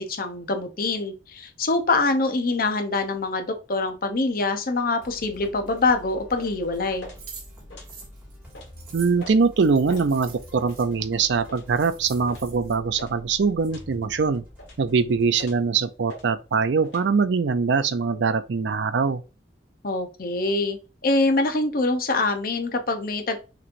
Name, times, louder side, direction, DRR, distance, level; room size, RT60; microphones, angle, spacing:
voice 1, 0.0-7.1 19.8-23.4, left 3 dB, 50° left, 0.7 m, -24 dB
sound 1, 5.0-18.4, left 1 dB, 10° right, 1.9 m, -47 dB
sound 2, 5.7-5.9 6.4-6.6 7.0-7.2 7.7-7.9 8.5-8.7 9.2-9.4 9.9-10.1 10.6-10.8 11.5-11.7 12.3-12.5 13.0-13.2 13.7-13.9 14.6-14.8 15.4-15.7 16.1-16.3 16.8-17.1, left 1 dB, 85° left, 1.5 m, -43 dB
sound 3, 7.2-10.9 11.4-11.5 11.7-12.7, right 6 dB, 50° right, 1.9 m, -45 dB
voice 2, 8.9-14.4 14.8-19.2, right 5 dB, 75° right, 0.5 m, -22 dB
5.9 x 3.1 x 2.6 m
head